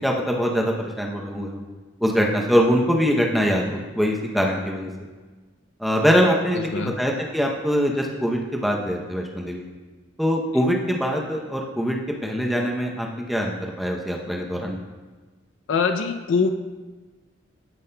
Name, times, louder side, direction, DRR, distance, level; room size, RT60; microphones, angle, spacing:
voice 1, 0.0-1.6 2.0-4.9 5.8-9.7 10.2-12.0 12.2-14.8, equal, ahead, -1 dB, 0.6 m, -23 dB
voice 2, 6.5-7.0 15.7-16.5, left 5 dB, 70° left, 6 dB, 0.4 m, -23 dB
13.5 x 5.4 x 2.2 m, 1.3 s
head